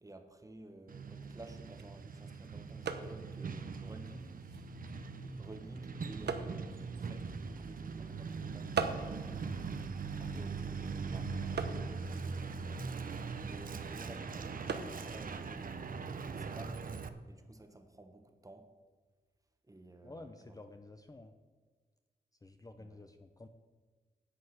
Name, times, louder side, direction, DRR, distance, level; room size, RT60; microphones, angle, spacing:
voice 1, 0.0-4.3 5.4-9.7 10.1-12.7 13.3-16.8 17.3-18.7 19.7-20.6 22.8-23.0, right 2 dB, 20° right, 7 dB, 1.2 m, -54 dB
Truck, 0.9-17.1, right 5 dB, 55° right, 0.8 m, -41 dB
sound 1, 1.3-16.9, right 5 dB, 85° right, 1.0 m, -45 dB
voice 2, 20.0-21.3 22.4-23.5, left 2 dB, 20° left, 7 dB, 0.6 m, -51 dB
10.0 x 7.9 x 6.5 m, 1.4 s
wide cardioid pair, 120°, 17 cm